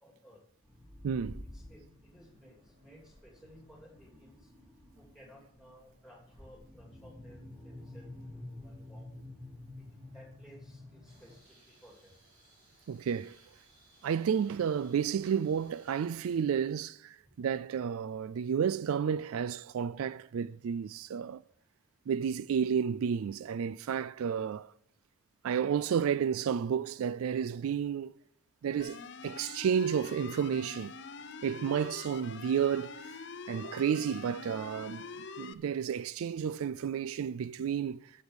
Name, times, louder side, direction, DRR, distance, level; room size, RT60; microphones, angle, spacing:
voice 1, 0.0-0.4 1.5-1.8 2.1-2.5 2.8-4.4 5.0-8.1 8.3-9.1 9.8-9.9 10.1-11.4 11.8-12.1, equal, ahead, 3.0 m, -57 dB
sound 1, 0.6-11.4, left 1 dB, 20° right, 3.7 m, -50 dB
voice 2, 1.0-1.4 12.9-13.4 14.0-21.4 22.1-24.7 25.4-28.1 28.6-30.9 31.4-33.2 33.5-35.1 35.4-38.1, right 7 dB, 80° right, 0.3 m, -31 dB
sound 2, 11.0-16.4, right 2 dB, 50° right, 6.1 m, -62 dB
sound 3, 28.8-35.5, left 5 dB, 55° left, 0.7 m, -45 dB
13.0 x 6.9 x 6.3 m
head